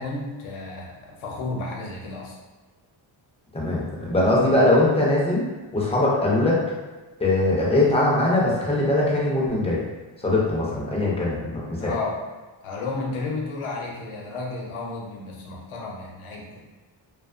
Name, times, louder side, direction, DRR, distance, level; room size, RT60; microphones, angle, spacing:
voice 1, 0.0-2.4 11.8-12.2 12.6-16.6, left 3 dB, 85° left, -2 dB, 0.7 m, -32 dB
voice 2, 3.5-5.4 5.7-6.6 7.2-9.8 10.2-11.9, left 2 dB, 15° left, -5 dB, 0.3 m, -21 dB
2.7 x 2.2 x 2.4 m, 1.2 s
cardioid pair, 150°, 48 cm